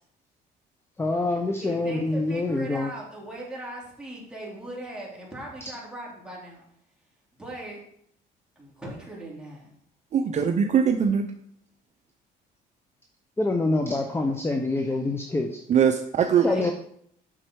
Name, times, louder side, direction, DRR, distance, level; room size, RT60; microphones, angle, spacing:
voice 1, 1.0-2.9 13.4-15.6 16.4-16.7, left 2 dB, 15° left, 3 dB, 0.8 m, -26 dB
voice 2, 1.6-6.6 7.4-7.8 8.5-9.7 16.4-16.7, right 1 dB, 5° right, -4 dB, 3.3 m, -39 dB
voice 3, 10.1-11.3 15.7-16.5, right 7 dB, 45° right, 6 dB, 0.7 m, -21 dB
7.7 x 6.3 x 4.7 m, 0.67 s
cardioid pair, 110°, 17 cm